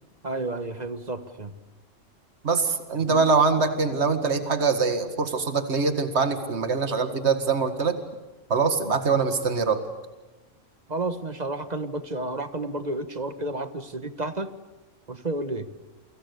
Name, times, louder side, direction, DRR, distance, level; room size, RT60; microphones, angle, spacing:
voice 1, 0.2-1.5 3.0-3.2 10.9-14.5 15.1-15.7, right 2 dB, 35° right, 11 dB, 1.4 m, -31 dB
voice 2, 2.4-8.0 8.5-9.8, right 4 dB, 60° right, 8 dB, 2.2 m, -23 dB
28.5 x 25.5 x 6.9 m, 1.2 s
omnidirectional pair, 1.3 m